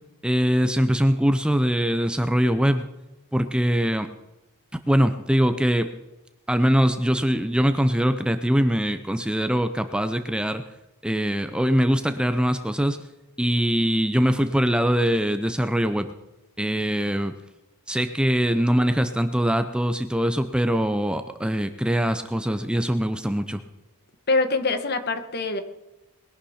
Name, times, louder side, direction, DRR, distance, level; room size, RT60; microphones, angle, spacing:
voice 1, 0.2-2.8 3.3-4.1 4.9-5.9 6.5-10.6 11.0-13.0 13.4-16.1 16.6-17.3 17.9-23.6, equal, 5° right, 9 dB, 0.6 m, -22 dB
voice 2, 24.3-25.6, left 3 dB, 50° left, 10 dB, 1.3 m, -24 dB
21.0 x 11.5 x 4.3 m, 0.98 s
head